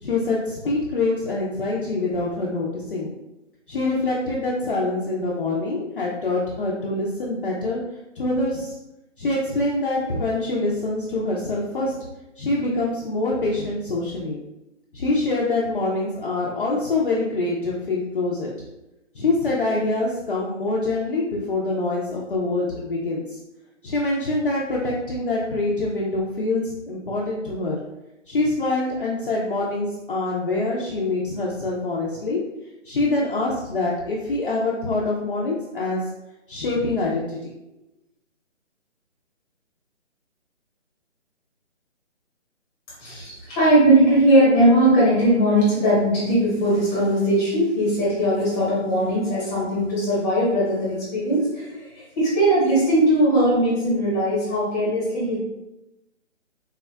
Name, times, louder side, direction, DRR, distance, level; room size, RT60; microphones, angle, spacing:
voice 1, 0.0-3.1 3.7-7.8 8.2-8.8 9.2-11.9 12.4-14.4 14.9-18.5 19.1-23.4 23.8-27.8 28.3-32.4 32.8-36.0 36.5-37.5, left 2 dB, 45° left, -4 dB, 0.4 m, -25 dB
voice 2, 43.0-55.4, right 1 dB, 15° left, -7 dB, 0.8 m, -19 dB
3.5 x 2.2 x 2.2 m, 0.94 s
hypercardioid pair, 155°, 37 cm